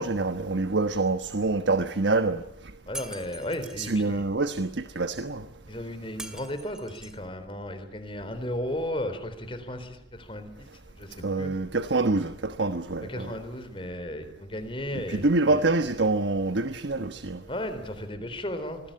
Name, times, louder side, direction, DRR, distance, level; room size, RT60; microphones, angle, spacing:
voice 1, 0.0-2.4 3.8-5.5 11.2-13.3 14.9-17.4, right 3 dB, 85° right, 1.2 m, -26 dB
voice 2, 2.9-4.2 5.7-10.7 11.0-11.5 13.1-15.7 17.5-18.8, left 1 dB, 30° left, 3.9 m, -35 dB
Shatter, 2.9-3.9 6.2-7.2, right 1 dB, 5° right, 2.3 m, -42 dB
26.0 x 20.5 x 8.8 m
head